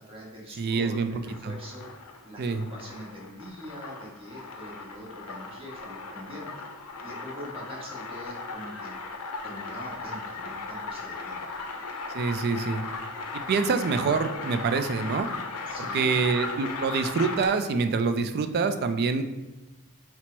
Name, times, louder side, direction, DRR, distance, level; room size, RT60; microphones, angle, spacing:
voice 1, 0.1-1.9 2.2-6.7 7.0-9.0 9.4-11.5 15.6-16.3, equal, 25° right, -2 dB, 1.0 m, -43 dB
voice 2, 0.6-1.1 1.4-1.5 2.4-2.6 12.1-12.8 13.3-15.3 15.9-19.2, right 4 dB, 45° right, 9 dB, 0.3 m, -26 dB
sound 1, 1.1-17.7, left 3 dB, 75° left, 0.5 m, -37 dB
4.3 x 2.0 x 4.4 m, 1.1 s
head